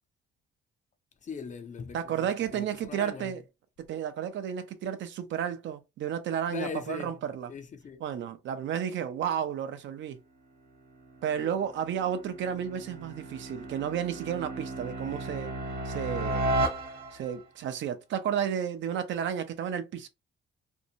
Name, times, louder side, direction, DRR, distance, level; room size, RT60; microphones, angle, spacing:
voice 1, 1.2-3.3 6.5-7.2 7.5-8.0, left 5 dB, 40° left, 0.5 m, -40 dB
voice 2, 1.9-3.4 3.9-7.5 8.0-10.2 11.2-15.5 15.9-16.6 17.1-20.1, right 9 dB, 70° right, 0.5 m, -32 dB
sound 1, 11.0-17.4, right 1 dB, 50° right, 1.0 m, -34 dB
2.6 x 2.1 x 2.7 m
cardioid pair, 90°, 20 cm